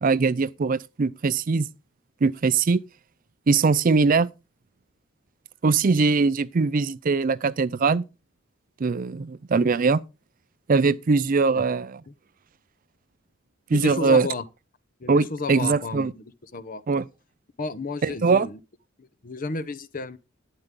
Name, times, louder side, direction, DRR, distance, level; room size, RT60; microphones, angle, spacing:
voice 1, 0.0-1.7 2.2-2.8 3.5-4.3 5.6-8.0 8.8-10.0 10.7-12.0 13.7-14.3 15.1-16.1 16.9-17.0 18.0-18.5, right 4 dB, 40° right, 0.4 m, -21 dB
voice 2, 13.7-14.4 15.0-16.2 16.5-16.8 17.6-18.6 19.0-20.2, left 3 dB, 45° left, 0.8 m, -32 dB
11.5 x 9.1 x 3.7 m
head